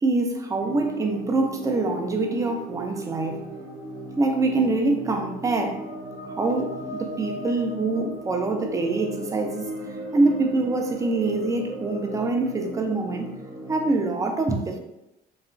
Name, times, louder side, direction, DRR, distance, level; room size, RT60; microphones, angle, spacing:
voice 1, 0.0-3.5 4.2-5.8 6.3-9.7 10.1-13.3 13.7-14.8, right 3 dB, 20° right, 4 dB, 0.4 m, -25 dB
sound 1, 0.6-14.0, right 1 dB, 80° right, 0.8 m, -37 dB
2.8 x 2.4 x 2.4 m, 0.90 s
cardioid pair, 110°, 17 cm